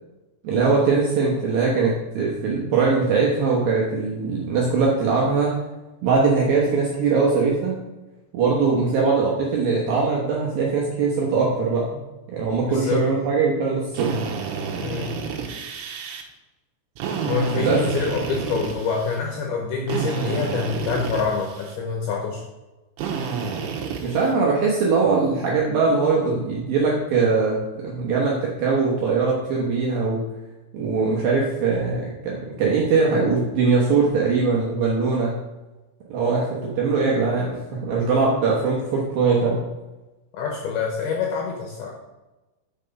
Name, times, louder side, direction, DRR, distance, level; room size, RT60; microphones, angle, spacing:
voice 1, 0.4-5.5 6.0-7.8 8.3-12.0 12.3-14.2 17.6-17.8 24.0-30.2 30.7-35.3 36.1-39.6, right 4 dB, 75° right, -3 dB, 2.2 m, -21 dB
voice 2, 12.6-13.1 14.8-15.1 17.3-22.4 40.3-41.9, left 5 dB, 75° left, 0 dB, 2.3 m, -26 dB
Drill, 13.9-16.2 17.0-19.2 19.9-21.8 23.0-24.3, right 5 dB, 90° right, 3.4 m, -30 dB
6.8 x 5.8 x 5.2 m, 1.1 s
omnidirectional pair, 5.4 m